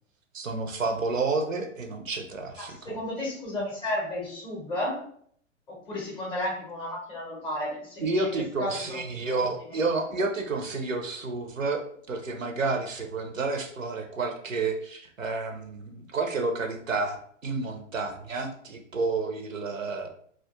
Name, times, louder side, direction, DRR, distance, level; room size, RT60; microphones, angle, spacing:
voice 1, 0.3-3.0 8.0-17.2 17.4-20.1, right 3 dB, 90° right, 5 dB, 0.5 m, -30 dB
voice 2, 2.6-5.0 5.7-9.0 9.3-9.5, left 1 dB, 15° left, -3 dB, 0.5 m, -33 dB
2.2 x 2.1 x 2.7 m, 0.62 s
figure-of-eight pair, 100°, 38 cm